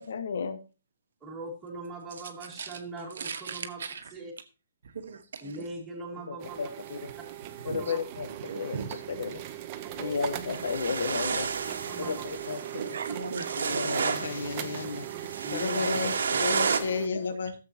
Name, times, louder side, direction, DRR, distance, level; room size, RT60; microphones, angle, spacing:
voice 1, 0.1-0.6 6.3-7.1 7.6-8.8 9.1-9.4 9.9-11.5 12.0-12.8 13.6-15.1 15.5-17.5, left 5 dB, 60° left, 1.1 m, -33 dB
voice 2, 1.2-3.8 4.1-4.3 5.4-6.6 7.6-8.0 9.8-10.2 11.9-12.3 15.4-15.8, right 2 dB, 5° right, 2.2 m, -40 dB
voice 3, 3.1-4.1 4.8-5.6 7.7-7.8 8.5-9.3 12.8-13.9 16.7-16.8 17.1-17.4, right 5 dB, 60° right, 1.3 m, -38 dB
sound 1, 6.4-17.1, right 12 dB, 20° right, 0.7 m, -40 dB
sound 2, 10.5-16.8, right 5 dB, 80° right, 1.4 m, -32 dB
13.5 x 7.7 x 2.9 m
hypercardioid pair, 175°, 0 cm